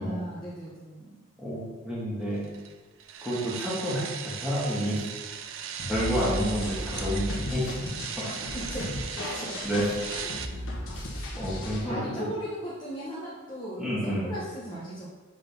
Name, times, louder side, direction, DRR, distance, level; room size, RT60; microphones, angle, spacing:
voice 1, 0.0-1.2 8.5-9.6 10.1-10.8 11.1-11.2 11.8-15.1, equal, 20° left, -7 dB, 1.0 m, -38 dB
voice 2, 1.4-2.4 3.2-5.0 5.9-7.8 9.6-9.8 10.9-11.1 11.4-12.0 13.8-14.3, equal, 5° right, -8 dB, 1.9 m, -29 dB
sound 1, 2.4-10.5, right 8 dB, 60° right, 0.5 m, -38 dB
sound 2, 5.8-11.8, left 1 dB, 65° left, 1.4 m, -35 dB
6.5 x 4.0 x 5.3 m, 1.3 s
head